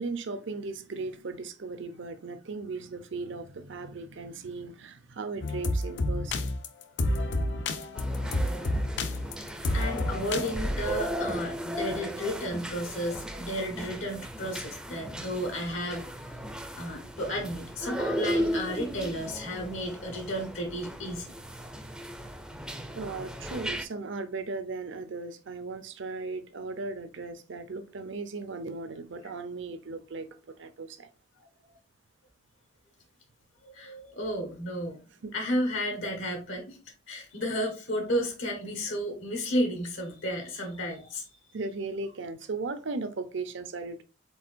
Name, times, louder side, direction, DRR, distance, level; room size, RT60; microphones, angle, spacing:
voice 1, 0.0-6.5 22.9-31.1 35.2-35.3 41.5-44.0, right 3 dB, 65° right, 0.6 m, -37 dB
sound 1, 5.4-10.5, left 1 dB, 60° left, 0.5 m, -29 dB
sound 2, 7.9-23.9, equal, 5° right, 0.4 m, -36 dB
voice 2, 9.7-16.1 16.7-21.3 31.7-31.8 33.6-35.0 35.3-36.8 37.1-41.3, equal, 80° left, 1.4 m, -32 dB
4.7 x 3.9 x 2.5 m
head